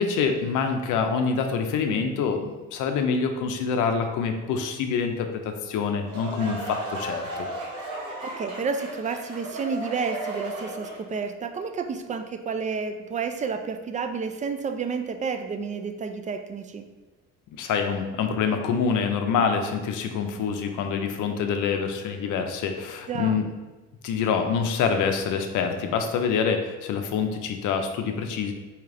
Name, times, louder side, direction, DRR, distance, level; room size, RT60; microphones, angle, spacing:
voice 1, 0.0-7.3 17.6-23.5 24.0-28.5, left 6 dB, 85° left, 5 dB, 0.5 m, -26 dB
sound 1, 5.8-11.1, right 1 dB, 85° right, 1.2 m, -35 dB
voice 2, 8.2-16.9 23.1-23.4, right 5 dB, 25° right, 7 dB, 0.3 m, -30 dB
3.3 x 2.9 x 3.7 m, 1.2 s
cardioid pair, 90°, 30 cm